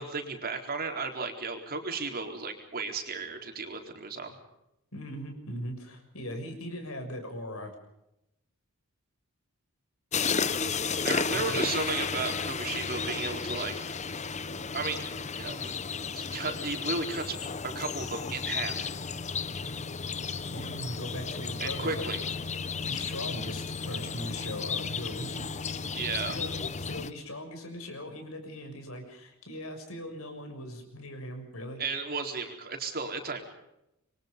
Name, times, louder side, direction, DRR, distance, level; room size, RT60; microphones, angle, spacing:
voice 1, 0.0-4.3 11.0-13.9 14.7-15.1 15.3-15.7 16.1-18.9 21.6-22.2 25.9-26.4 31.8-33.4, right 4 dB, 45° right, 3 dB, 4.3 m, -34 dB
voice 2, 4.9-7.7 11.3-11.6 20.5-22.1 22.8-25.5 26.0-26.5 26.8-31.8, left 1 dB, 75° left, 5 dB, 6.6 m, -39 dB
sound 1, 10.1-27.1, left 5 dB, 35° left, 0.9 m, -33 dB
27.0 x 24.0 x 5.4 m, 0.86 s
head